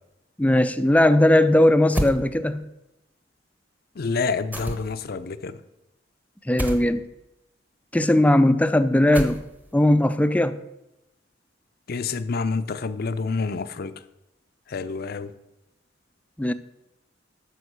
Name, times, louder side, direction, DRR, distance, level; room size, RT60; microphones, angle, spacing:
voice 1, 0.4-2.7 6.5-7.1 7.9-9.4 9.7-10.6 16.4-16.5, left 1 dB, 10° left, 0.4 m, -18 dB
sound 1, 1.9-2.2 4.5-5.1 6.6-6.9 9.1-9.7, equal, 10° right, 1.0 m, -28 dB
voice 2, 4.0-5.6 11.9-13.9 14.7-15.3, left 4 dB, 55° left, 0.5 m, -28 dB
9.3 x 6.3 x 6.6 m
head